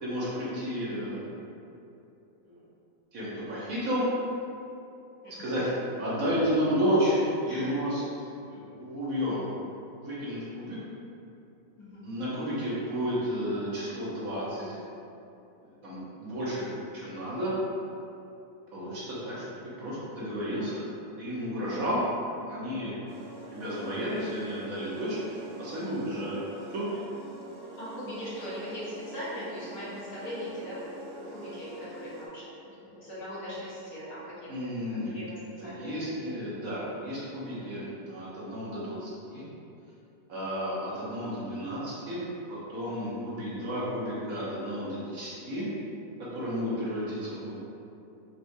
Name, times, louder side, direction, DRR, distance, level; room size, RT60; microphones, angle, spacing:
voice 1, 0.0-1.3 2.4-2.6 3.1-4.0 5.4-5.7 6.0-9.4 10.0-10.8 12.0-14.8 15.8-17.5 18.7-19.5 19.8-20.8 21.2-22.0 22.4-23.1 23.5-26.4 26.7-26.9 34.5-35.2 35.6-39.4 40.3-42.2 42.5-45.7 46.3-47.6, equal, 60° right, -8 dB, 1.3 m, -32 dB
voice 2, 5.2-5.5 7.5-7.7 11.8-12.1 22.7-22.9 27.8-35.9 36.2-36.3 37.6-37.8, equal, 70° left, -10 dB, 1.7 m, -40 dB
sound 1, 23.1-32.3, right 1 dB, 85° right, 1.4 m, -45 dB
4.7 x 3.0 x 2.6 m, 2.8 s
omnidirectional pair, 1.7 m